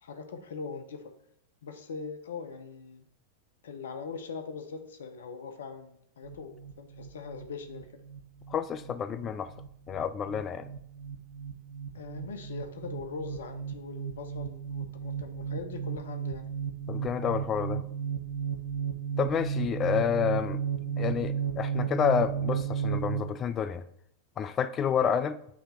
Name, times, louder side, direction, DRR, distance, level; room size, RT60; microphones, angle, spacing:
voice 1, 0.0-1.1 1.6-3.0 3.6-7.9 11.9-16.5 20.8-21.0, left 5 dB, 65° left, 0.6 m, -41 dB
sound 1, 6.2-23.2, right 8 dB, 85° right, 0.8 m, -34 dB
voice 2, 8.5-9.5 9.9-10.7 16.9-17.8 19.2-20.6 21.0-23.8 24.4-25.4, left 8 dB, 25° left, 0.3 m, -29 dB
8.3 x 3.4 x 4.3 m
figure-of-eight pair, 90°, 0 cm